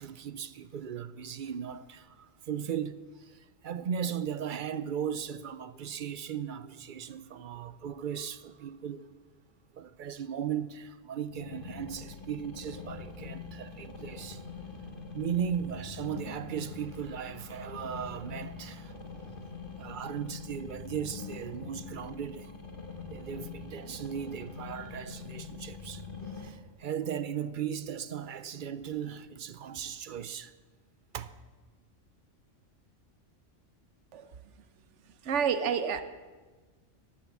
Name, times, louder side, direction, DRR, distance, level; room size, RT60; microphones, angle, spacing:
voice 1, 0.0-9.1 9.7-14.4 15.1-19.0 19.8-22.6 23.1-30.5 31.1-31.3, right 8 dB, 50° right, 0.7 m, -37 dB
sound 1, 11.3-26.5, left 4 dB, 45° left, 1.6 m, -44 dB
voice 2, 35.3-36.0, right 7 dB, 75° right, 1.1 m, -28 dB
12.0 x 11.0 x 7.3 m
omnidirectional pair, 1.3 m